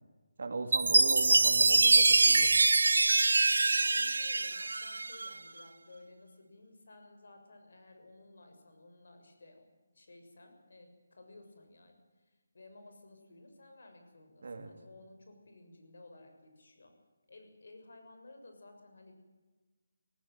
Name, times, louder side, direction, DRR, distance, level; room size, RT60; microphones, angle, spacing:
voice 1, 0.4-2.5 14.4-14.7, right 3 dB, 60° right, 6 dB, 3.0 m, -38 dB
Chime, 0.7-5.3, right 3 dB, 80° right, 0.6 m, -24 dB
voice 2, 3.8-11.9 12.5-16.9 17.3-19.1, left 2 dB, 65° left, 5 dB, 6.6 m, -56 dB
19.0 x 16.0 x 9.3 m, 1.3 s
hypercardioid pair, 170°, 0 cm